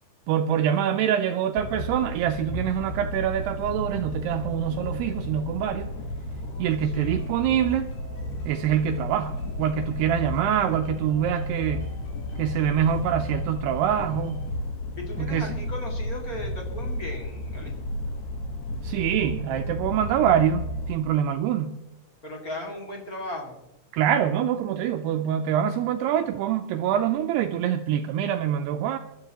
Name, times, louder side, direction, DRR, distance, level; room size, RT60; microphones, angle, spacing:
voice 1, 0.3-5.9 6.6-7.9 8.5-11.9 12.4-14.4 15.2-15.6 18.8-21.8 23.9-29.0, right 9 dB, 80° right, 6 dB, 2.4 m, -25 dB
sound 1, 1.6-21.0, left 1 dB, 70° left, 2.0 m, -33 dB
voice 2, 6.4-7.2 15.0-17.7 22.2-23.6, left 1 dB, 40° left, -1 dB, 1.2 m, -37 dB
sound 2, 6.7-14.5, right 1 dB, 90° left, 7.5 m, -51 dB
27.0 x 12.5 x 2.9 m, 0.91 s
omnidirectional pair, 5.2 m